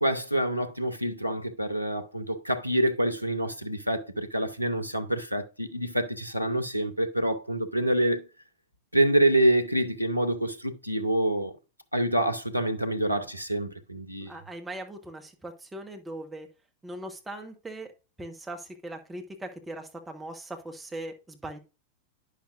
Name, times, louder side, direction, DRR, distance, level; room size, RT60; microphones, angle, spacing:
voice 1, 0.0-8.3 8.9-11.6 11.9-14.4, right 1 dB, 90° right, 0.8 m, -26 dB
voice 2, 14.2-16.5 16.8-17.9 18.2-21.6, right 1 dB, 10° right, 1.3 m, -40 dB
10.0 x 6.3 x 2.5 m
figure-of-eight pair, 90°, 0 cm